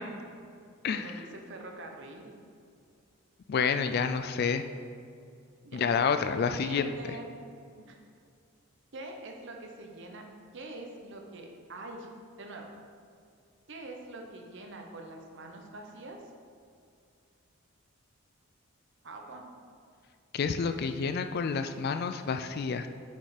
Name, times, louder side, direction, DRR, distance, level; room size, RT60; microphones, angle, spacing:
voice 1, 0.9-2.4 5.6-5.8 6.6-7.3 7.8-8.0 8.9-10.2 10.5-12.1 12.4-12.7 13.7-16.2 19.0-19.4, right 2 dB, 55° right, 2 dB, 0.9 m, -44 dB
voice 2, 3.5-4.6 5.7-6.9 20.3-22.9, left 6 dB, 45° left, 8 dB, 0.3 m, -29 dB
6.7 x 5.3 x 4.9 m, 2.4 s
head